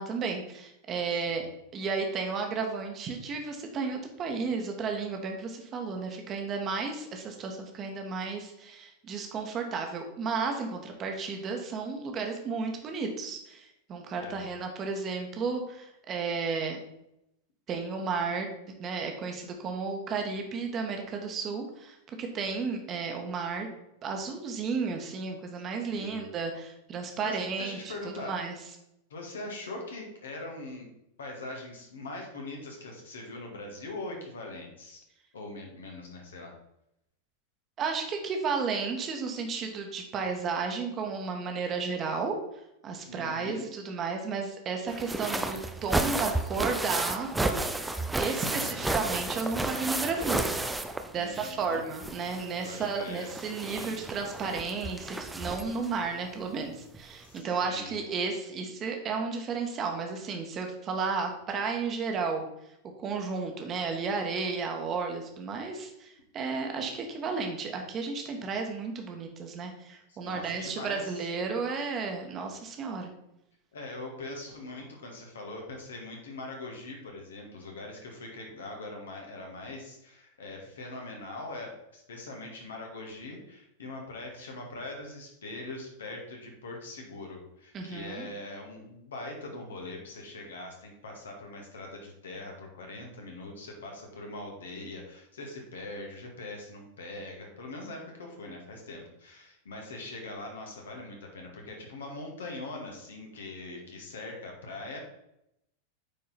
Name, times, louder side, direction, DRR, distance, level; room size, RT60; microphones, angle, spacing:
voice 1, 0.0-16.8 17.7-18.5 18.8-23.7 24.0-28.5 37.8-42.4 42.8-47.6 48.1-50.5 51.1-62.4 63.0-73.1 87.7-88.3, right 4 dB, 30° right, 3 dB, 1.5 m, -33 dB
voice 2, 25.9-26.3 27.2-28.4 29.1-30.9 31.2-35.0 35.3-36.5 43.1-43.7 48.5-48.9 51.1-51.9 52.3-53.3 53.8-54.0 57.2-58.0 70.1-71.2 73.7-105.0, left 2 dB, 65° left, 1 dB, 2.1 m, -42 dB
sound 1, 44.9-51.6 51.9-55.9 56.9-57.0 57.4-57.5, right 2 dB, 5° right, 0.6 m, -32 dB
9.0 x 4.6 x 4.3 m, 0.82 s
figure-of-eight pair, 90°, 0 cm